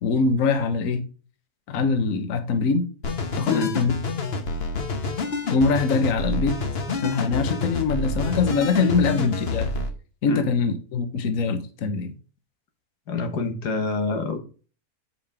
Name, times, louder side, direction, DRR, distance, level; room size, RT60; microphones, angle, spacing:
voice 1, 0.0-1.0 1.7-2.9 3.3-3.9 5.5-6.6 6.9-9.7 10.2-12.1, left 4 dB, 60° left, 1.3 m, -23 dB
sound 1, 3.0-9.9, left 3 dB, 45° left, 1.2 m, -28 dB
voice 2, 3.4-3.8 10.2-10.5 13.1-14.4, left 4 dB, 90° left, 1.9 m, -27 dB
7.8 x 5.1 x 3.5 m
omnidirectional pair, 1.7 m